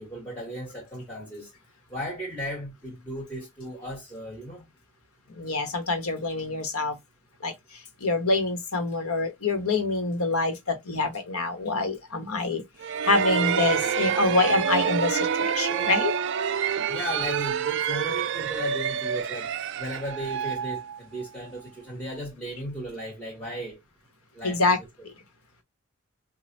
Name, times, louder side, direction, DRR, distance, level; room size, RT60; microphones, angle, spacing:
voice 1, 0.0-1.5 1.9-4.6 16.9-23.8 24.3-24.7, equal, 5° left, 1.5 m, -36 dB
voice 2, 5.4-6.9 7.4-7.5 8.0-12.6 13.0-16.1 24.4-24.8, left 3 dB, 80° left, 1.3 m, -26 dB
sound 1, 12.8-21.5, right 7 dB, 55° right, 0.4 m, -27 dB
5.2 x 2.4 x 2.6 m
head